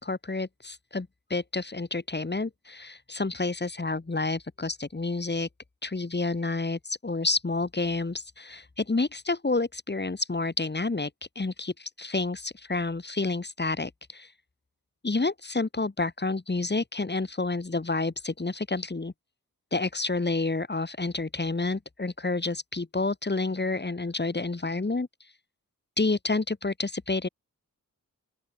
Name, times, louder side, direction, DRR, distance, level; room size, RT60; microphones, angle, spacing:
voice 1, 0.0-5.5 5.8-11.1 11.4-14.3 15.0-19.1 19.7-25.1 26.0-27.3, left 3 dB, 30° left, 3.9 m, -29 dB
open air
wide cardioid pair, 125°, 33 cm